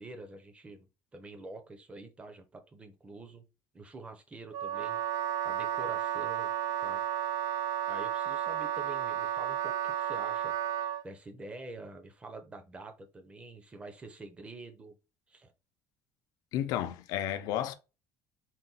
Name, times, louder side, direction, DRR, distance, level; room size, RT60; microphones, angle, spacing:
voice 1, 0.0-3.4 3.7-5.0 5.4-6.5 6.8-7.0 7.9-14.9 15.3-15.5, right 2 dB, 20° right, 0.8 m, -47 dB
Wind instrument woodwind instrument, 4.5-11.0, right 10 dB, 65° right, 0.4 m, -32 dB
voice 2, 16.5-17.7, left 11 dB, 75° left, 0.5 m, -32 dB
4.2 x 2.2 x 4.0 m
cardioid pair, 135°, 6 cm